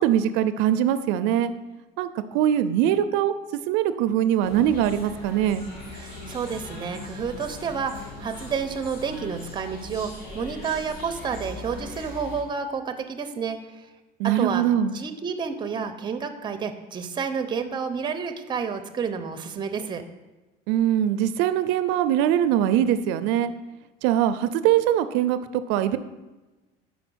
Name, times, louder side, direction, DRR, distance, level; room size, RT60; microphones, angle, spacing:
voice 1, 0.0-1.5 2.0-3.3 3.7-5.6 14.2-14.9 20.7-23.5 24.0-26.0, right 11 dB, 85° right, 12 dB, 0.4 m, -22 dB
sound 1, 4.4-12.4, left 1 dB, 55° left, 2.4 m, -40 dB
voice 2, 5.9-10.1 10.3-13.9 14.4-14.6 14.9-20.0, right 6 dB, 25° right, 8 dB, 0.6 m, -30 dB
5.0 x 4.9 x 6.2 m, 1.1 s
cardioid pair, 125°, 18 cm